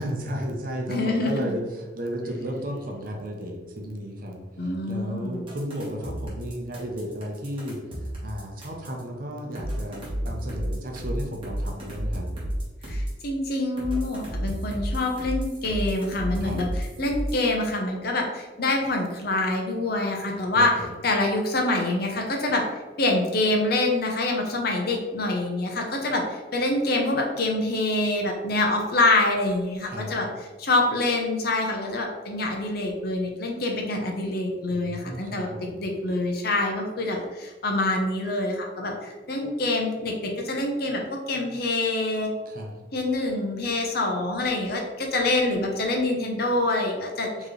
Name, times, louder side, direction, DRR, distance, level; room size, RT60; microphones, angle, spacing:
voice 1, 0.0-12.3 16.4-16.6 20.5-20.9 29.8-30.1 34.7-35.8 42.4-42.7 47.4-47.5, equal, 45° right, 1 dB, 0.7 m, -34 dB
voice 2, 0.9-1.6 4.6-5.4 12.8-16.7 17.0-20.7 21.0-22.6 23.0-30.3 30.6-35.5 35.8-42.3 42.9-47.5, left 2 dB, 55° left, 1 dB, 0.7 m, -26 dB
sound 1, 5.5-9.0 9.5-13.2 13.8-17.5, equal, 30° right, 1.2 m, -31 dB
4.6 x 3.0 x 3.1 m, 1.3 s
head